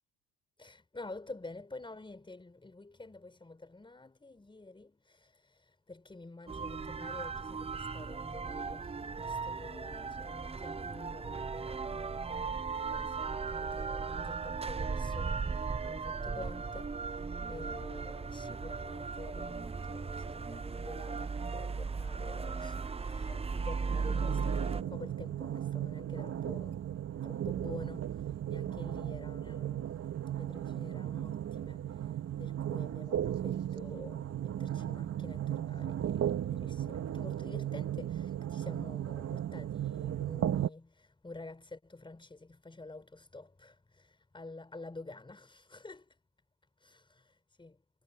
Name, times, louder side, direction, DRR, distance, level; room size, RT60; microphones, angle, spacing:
voice 1, 0.6-26.9 27.2-30.0 30.3-46.2 46.8-47.8, left 2 dB, 15° left, 5.6 m, -49 dB
sound 1, 6.5-24.8, right 5 dB, 20° right, 0.9 m, -37 dB
sound 2, 23.9-40.7, right 11 dB, 50° right, 2.3 m, -36 dB
supercardioid pair, 85°, 32 cm